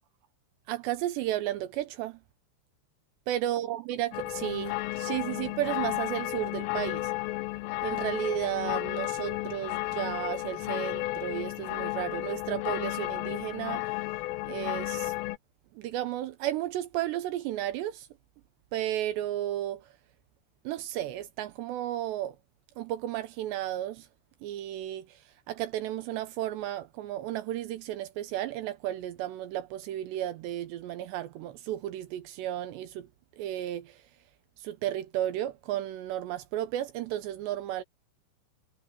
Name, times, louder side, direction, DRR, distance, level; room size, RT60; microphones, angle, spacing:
voice 1, 0.7-2.2 3.3-7.1 7.8-13.9 14.5-15.1 15.8-18.1 18.7-19.8 20.6-22.4 22.8-24.1 24.4-25.2 25.5-33.1 33.4-34.0 34.6-37.8, right 13 dB, 75° right, 2.7 m, -33 dB
sound 1, 4.1-15.4, left 20 dB, 85° left, 3.2 m, -33 dB
omnidirectional pair, 5.7 m